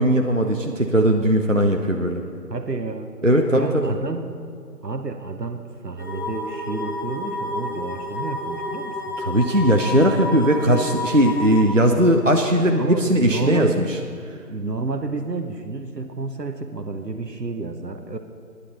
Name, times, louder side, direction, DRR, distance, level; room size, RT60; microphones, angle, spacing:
voice 1, 0.0-2.2 3.2-3.9 9.2-14.0, equal, 50° right, 3 dB, 0.6 m, -19 dB
voice 2, 2.5-3.1 3.6-4.4 4.8-9.0 12.8-14.0 14.5-18.2, right 3 dB, 75° right, 7 dB, 0.9 m, -30 dB
sound 1, 6.0-11.6, left 1 dB, 60° left, 2.9 m, -30 dB
15.0 x 9.9 x 4.1 m, 2.3 s
figure-of-eight pair, 175°, 49 cm